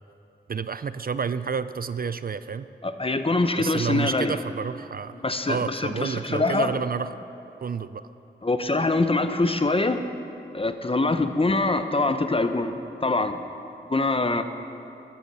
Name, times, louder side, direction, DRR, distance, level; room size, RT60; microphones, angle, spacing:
voice 1, 0.5-2.7 3.6-5.2 5.5-7.1 7.6-8.1, right 6 dB, 50° right, 13 dB, 0.4 m, -29 dB
voice 2, 2.8-4.4 5.2-6.7 8.4-10.0 10.5-12.7 13.0-13.4 13.9-14.4, left 2 dB, 30° left, 8 dB, 0.9 m, -24 dB
14.5 x 12.5 x 5.6 m, 2.9 s
wide cardioid pair, 60°, 20 cm